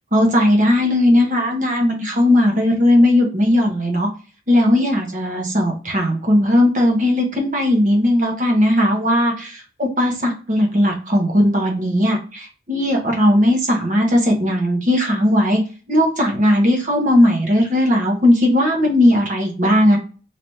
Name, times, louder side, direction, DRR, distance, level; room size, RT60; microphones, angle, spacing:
voice 1, 0.1-4.1 4.5-15.6 15.9-20.0, left 1 dB, 45° right, 1 dB, 1.0 m, -17 dB
3.4 x 3.0 x 2.7 m, 0.37 s
head